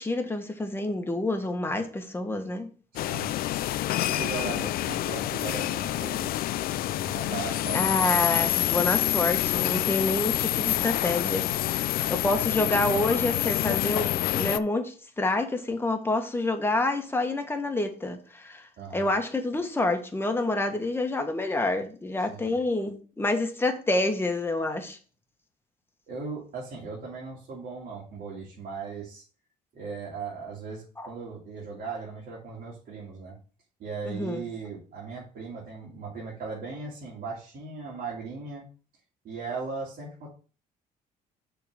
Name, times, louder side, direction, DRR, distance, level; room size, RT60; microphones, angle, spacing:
voice 1, 0.0-2.7 7.0-7.1 7.7-25.0 31.0-31.1 34.1-34.4, left 2 dB, 15° left, 1.4 m, -28 dB
voice 2, 2.9-3.3 4.1-6.4 6.7-7.8 18.8-19.1 22.3-22.6 26.1-29.2 29.7-33.4 33.8-38.7 39.2-40.3, right 4 dB, 60° right, 2.7 m, -38 dB
sound 1, 3.0-14.6, left 14 dB, 60° left, 0.4 m, -27 dB
6.9 x 3.8 x 6.3 m
cardioid pair, 110°, 17 cm